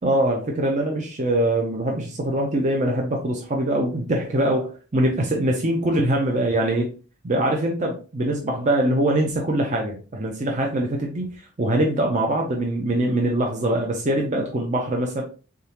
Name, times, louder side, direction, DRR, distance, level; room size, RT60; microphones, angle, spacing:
voice 1, 0.0-6.9 7.2-11.3 11.6-15.2, right 1 dB, 35° right, 0 dB, 0.5 m, -23 dB
3.8 x 3.6 x 2.9 m, 0.37 s
head